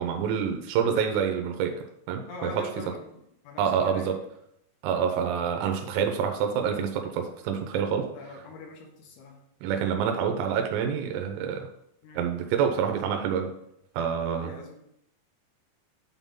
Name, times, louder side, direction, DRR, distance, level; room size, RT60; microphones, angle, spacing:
voice 1, 0.0-2.7 3.6-4.2 4.8-8.1 9.6-11.7 12.2-13.5 14.0-14.5, right 7 dB, 90° right, 4 dB, 3.5 m, -27 dB
voice 2, 2.3-4.2 8.1-9.4 12.0-12.2 14.4-14.7, left 3 dB, 80° left, 0 dB, 4.2 m, -43 dB
8.9 x 3.6 x 5.6 m, 0.76 s
omnidirectional pair, 5.9 m